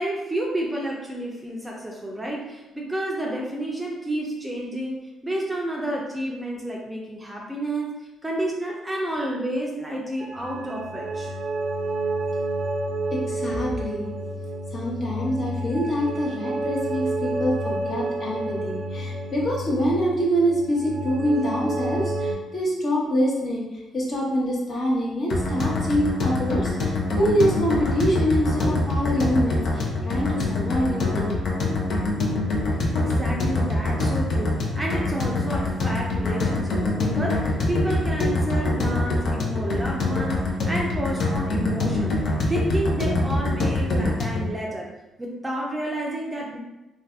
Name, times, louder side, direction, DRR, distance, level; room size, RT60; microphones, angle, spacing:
voice 1, 0.0-11.3 32.7-42.2 42.5-44.9 45.2-46.6, right 1 dB, 15° right, -2 dB, 0.5 m, -30 dB
sound 1, 10.2-22.3, right 2 dB, 75° right, 0.6 m, -30 dB
voice 2, 13.1-14.1 14.7-31.4, equal, 45° left, -4 dB, 1.0 m, -25 dB
sound 2, 25.3-44.5, left 2 dB, 65° left, 0.6 m, -24 dB
2.5 x 2.3 x 3.4 m, 1.0 s
cardioid pair, 90°, 0 cm